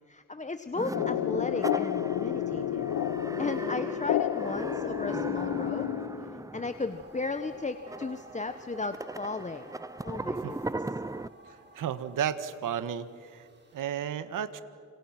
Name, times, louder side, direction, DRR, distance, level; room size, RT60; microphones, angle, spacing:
voice 1, 0.1-2.9 3.4-5.9 6.5-9.7 10.0-10.8, left 3 dB, 20° left, 10 dB, 1.2 m, -35 dB
sound 1, 0.7-11.3, right 2 dB, 10° right, 0.6 m, -39 dB
sound 2, 0.9-6.5, left 11 dB, 90° left, 0.9 m, -31 dB
sound 3, 6.7-13.8, right 2 dB, 35° right, 5.5 m, -53 dB
voice 2, 11.7-13.5 13.7-14.6, right 9 dB, 80° right, 12 dB, 1.5 m, -33 dB
30.0 x 27.5 x 6.1 m, 2.2 s
cardioid pair, 80°, 32 cm